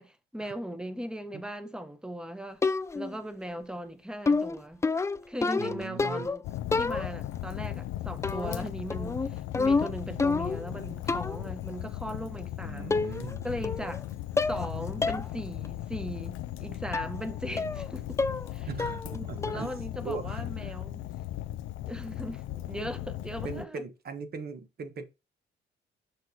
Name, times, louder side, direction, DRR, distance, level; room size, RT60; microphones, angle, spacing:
voice 1, 0.0-2.6 2.9-4.8 5.3-6.4 6.7-13.0 13.4-14.1 14.5-18.2 18.5-18.7 19.1-21.0 21.9-23.8, equal, 5° right, 1.0 m, -38 dB
sound 1, 2.6-3.2 4.3-6.4 6.7-7.4 8.2-8.6 8.9-10.7 11.1-11.5 12.4-12.5 12.9-13.4 13.6-14.0 14.4-14.7 15.0-15.3 15.7-15.8 16.9-17.2 17.6-17.9 18.2-18.5 18.8-19.2 19.4-19.8, left 4 dB, 15° left, 0.3 m, -29 dB
voice 2, 5.6-6.3 12.6-13.5 18.7-19.7 20.0-20.8 23.4-25.1, right 4 dB, 50° right, 1.3 m, -39 dB
Fire, 6.4-23.7, left 14 dB, 85° left, 0.4 m, -37 dB
6.4 x 6.1 x 2.8 m
cardioid pair, 90°, 20 cm